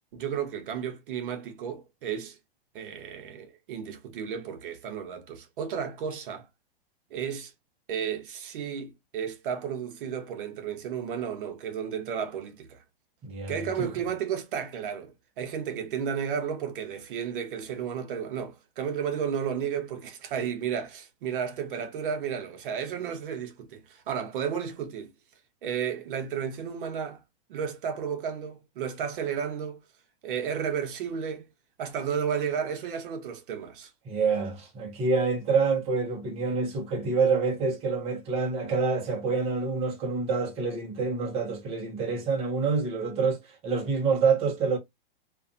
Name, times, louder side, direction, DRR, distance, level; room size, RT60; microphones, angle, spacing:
voice 1, 0.1-2.4 2.7-6.5 7.1-7.5 7.9-12.8 13.5-25.1 25.6-27.2 27.5-29.8 30.2-31.4 31.8-33.9, right 7 dB, 60° right, 0.8 m, -33 dB
voice 2, 13.2-13.9 34.0-44.8, right 4 dB, 20° right, 0.7 m, -27 dB
2.5 x 2.3 x 2.6 m
hypercardioid pair, 150°, 29 cm